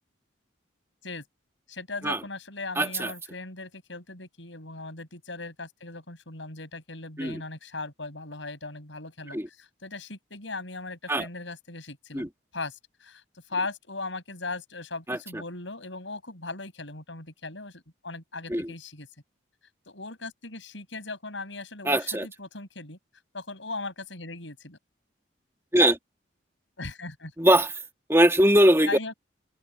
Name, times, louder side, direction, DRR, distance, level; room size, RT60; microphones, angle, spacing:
voice 1, 1.7-19.1 19.9-23.0 23.3-24.8 26.8-27.3 28.9-29.1, left 3 dB, 75° left, 6.9 m, -38 dB
voice 2, 2.8-3.1 7.2-7.4 9.3-9.5 11.1-11.3 12.1-12.3 15.1-15.2 18.5-18.7 21.8-22.3 25.7-26.0 27.4-27.7 28.1-28.9, right 1 dB, 15° right, 2.3 m, -21 dB
open air
head